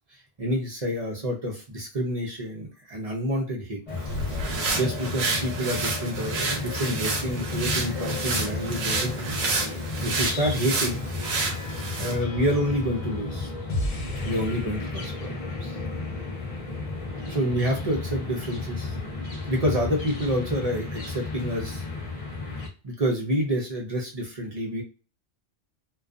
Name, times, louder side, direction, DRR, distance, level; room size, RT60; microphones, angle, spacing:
voice 1, 0.4-3.8 4.7-9.4 10.0-11.0 11.9-13.5 14.2-15.8 17.3-19.0 19.5-21.8 22.8-24.8, equal, 40° right, 0 dB, 0.5 m, -28 dB
sound 1, 3.9-22.7, left 3 dB, 30° left, 0.8 m, -33 dB
sound 2, 4.0-12.2, right 3 dB, 80° right, 1.1 m, -30 dB
sound 3, 10.7-16.9, left 1 dB, 90° left, 1.1 m, -38 dB
2.5 x 2.3 x 2.4 m, 0.33 s
omnidirectional pair, 1.3 m